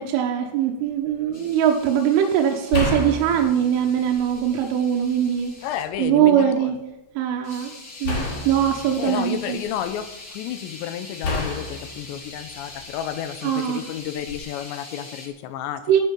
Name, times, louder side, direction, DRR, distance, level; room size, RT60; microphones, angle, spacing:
voice 1, 0.0-5.5 6.0-6.8 7.2-7.7 8.0-9.6 13.4-13.8 15.9-16.0, right 9 dB, 85° right, 1 dB, 3.6 m, -21 dB
sound 1, 0.9-1.1 2.7-4.6 5.0-6.0 8.0-10.0 11.2-13.1 14.2-14.4, left 2 dB, 45° left, 3.6 m, -30 dB
sound 2, 1.3-5.9 7.4-15.3, left 2 dB, 60° left, 0.9 m, -42 dB
voice 2, 5.6-6.7 9.0-16.0, left 10 dB, 80° left, 11 dB, 2.7 m, -31 dB
12.0 x 9.9 x 5.4 m, 0.96 s
omnidirectional pair, 5.5 m